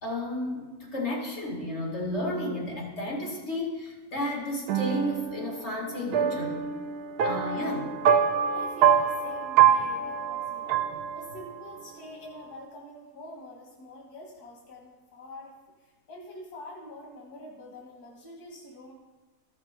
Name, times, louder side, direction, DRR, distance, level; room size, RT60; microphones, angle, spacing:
voice 1, 0.0-6.6 7.2-7.9, left 1 dB, 45° left, -3 dB, 2.6 m, -32 dB
sound 1, 4.7-11.7, right 8 dB, 90° right, 1.2 m, -25 dB
voice 2, 8.5-10.8 11.1-18.9, left 1 dB, 80° left, -2 dB, 1.9 m, -46 dB
14.0 x 5.9 x 4.5 m, 1.3 s
omnidirectional pair, 1.7 m